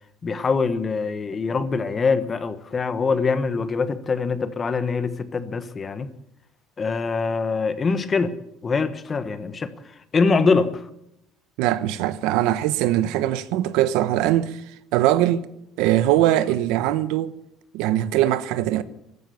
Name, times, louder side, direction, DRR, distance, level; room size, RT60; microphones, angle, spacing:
voice 1, 0.2-6.1 6.8-8.3 8.6-9.7 10.1-10.8, left 4 dB, 25° left, 1.2 m, -23 dB
voice 2, 11.6-14.6 14.9-15.5 15.8-17.3 17.7-18.8, right 13 dB, 80° right, 1.0 m, -21 dB
15.5 x 12.5 x 7.0 m
cardioid pair, 145°, 0 cm